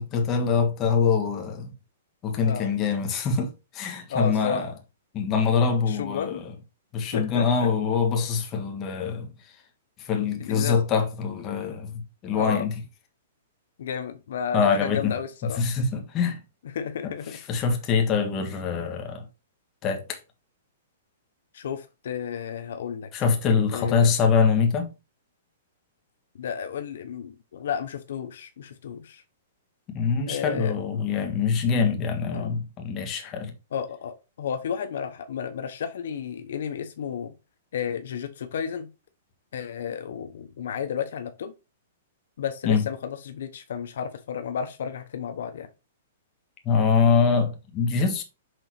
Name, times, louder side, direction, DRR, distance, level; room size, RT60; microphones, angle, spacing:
voice 1, 0.0-1.7 2.2-4.7 5.1-6.5 6.9-9.3 10.0-12.7 14.5-15.1 15.6-16.4 17.5-19.2 19.8-20.2 23.1-24.9 29.9-33.5 42.6-42.9 46.6-48.2, left 5 dB, 25° left, 1.6 m, -24 dB
voice 2, 2.4-2.7 4.1-4.6 5.9-6.4 7.1-7.7 10.4-10.8 12.3-12.7 13.8-15.6 16.7-17.4 21.5-23.1 23.7-24.1 26.4-29.2 30.3-31.0 32.3-32.5 33.7-37.3 37.7-38.9 39.5-41.5 42.4-45.7, left 7 dB, 70° left, 0.9 m, -32 dB
6.2 x 4.0 x 4.7 m
hypercardioid pair, 155°, 0 cm